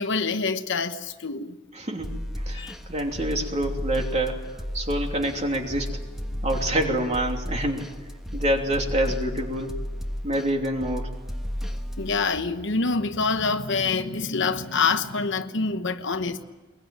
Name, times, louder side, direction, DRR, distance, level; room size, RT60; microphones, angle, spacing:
voice 1, 0.0-1.6 2.5-2.8 6.3-6.4 12.0-16.4, left 4 dB, 60° left, 9 dB, 1.1 m, -26 dB
voice 2, 1.7-4.4 4.7-5.9 6.4-7.9 8.3-9.8 10.2-11.1, right 1 dB, 35° right, 2 dB, 3.0 m, -27 dB
sound 1, 2.0-12.3, equal, ahead, 1.5 m, -33 dB
22.0 x 22.0 x 9.0 m, 1.2 s
head